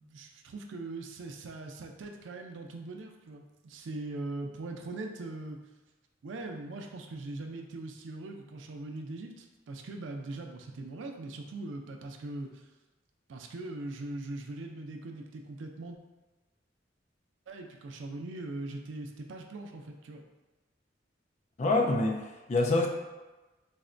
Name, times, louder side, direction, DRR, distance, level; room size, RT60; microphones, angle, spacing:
voice 1, 0.0-5.6 6.2-12.6 13.3-16.0 17.5-20.2, right 2 dB, 90° right, 3 dB, 0.4 m, -41 dB
voice 2, 21.6-22.9, left 2 dB, 40° left, 3 dB, 0.3 m, -26 dB
4.0 x 2.1 x 2.5 m, 1.1 s
head